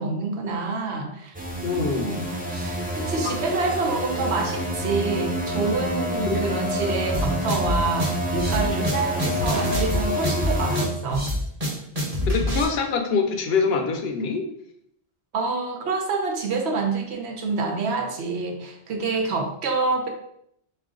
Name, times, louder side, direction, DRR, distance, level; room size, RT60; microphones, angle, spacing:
voice 1, 0.0-1.3 1.7-11.3 15.3-20.1, right 3 dB, 85° right, 3 dB, 1.0 m, -27 dB
sound 1, 1.3-10.9, equal, 15° right, 0.3 m, -28 dB
voice 2, 1.6-2.1 6.2-6.4 12.3-14.4, left 5 dB, 75° left, 5 dB, 0.9 m, -24 dB
sound 2, 7.1-12.6, left 1 dB, 35° right, 1.1 m, -26 dB
3.9 x 3.2 x 3.7 m, 0.72 s
omnidirectional pair, 1.1 m